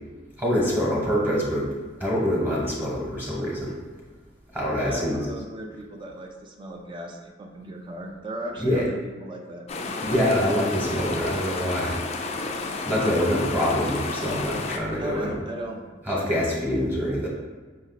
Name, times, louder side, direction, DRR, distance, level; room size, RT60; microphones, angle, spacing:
voice 1, 0.4-1.7 2.0-3.8 4.5-5.2 8.6-8.8 10.0-12.0 12.9-15.3 16.1-17.3, equal, 10° right, -5 dB, 1.0 m, -25 dB
voice 2, 4.8-10.1 15.0-15.8 16.1-16.3, equal, 25° right, 2 dB, 0.4 m, -36 dB
sound 1, 9.7-14.8, left 3 dB, 35° left, 0.4 m, -31 dB
5.1 x 2.5 x 4.0 m, 1.4 s
head